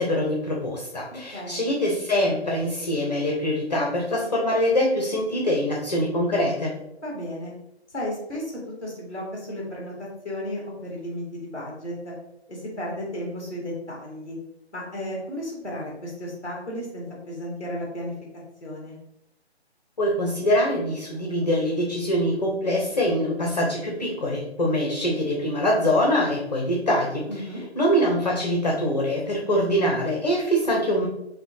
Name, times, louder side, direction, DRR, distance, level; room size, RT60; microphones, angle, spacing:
voice 1, 0.0-6.7 20.0-27.3 27.7-31.1, equal, 40° left, -2 dB, 0.6 m, -24 dB
voice 2, 1.1-1.6 7.0-7.5 7.9-12.1 12.5-14.4 14.7-18.1 18.6-19.0 27.3-27.6, left 1 dB, 10° left, -3 dB, 0.9 m, -34 dB
4.8 x 2.2 x 3.1 m, 0.82 s
figure-of-eight pair, 145°, 33 cm